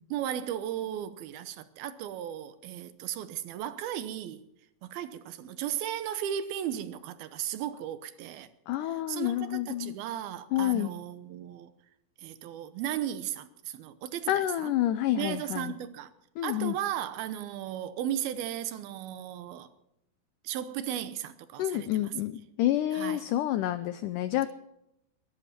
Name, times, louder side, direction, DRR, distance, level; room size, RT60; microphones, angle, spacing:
voice 1, 0.1-4.4 4.8-8.5 8.8-11.7 12.2-14.7 15.2-16.1 16.4-19.7 20.4-22.1 22.9-23.2, right 11 dB, 80° right, 2.8 m, -35 dB
voice 2, 8.7-10.0 10.5-10.9 14.3-15.7 16.4-16.8 21.6-24.5, left 13 dB, 85° left, 1.8 m, -29 dB
22.0 x 12.0 x 4.3 m
omnidirectional pair, 4.4 m